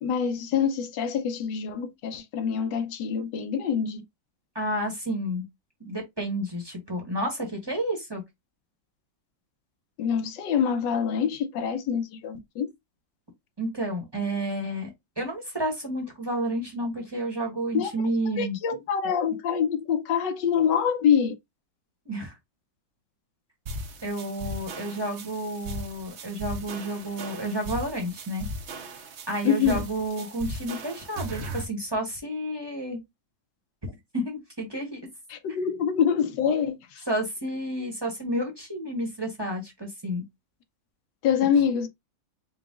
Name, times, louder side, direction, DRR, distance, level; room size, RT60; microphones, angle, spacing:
voice 1, 0.0-4.0 10.0-12.7 17.7-17.9 18.4-21.4 29.4-29.8 35.3-37.0 41.2-41.9, left 7 dB, 70° left, 1.2 m, -25 dB
voice 2, 4.5-5.5 5.8-8.2 13.6-14.9 15.2-18.6 22.0-22.4 24.0-28.5 29.3-33.0 34.1-35.0 37.1-40.2, right 1 dB, 20° right, 0.8 m, -30 dB
sound 1, 23.7-31.7, equal, 60° right, 0.7 m, -38 dB
4.8 x 2.3 x 3.7 m
omnidirectional pair, 2.1 m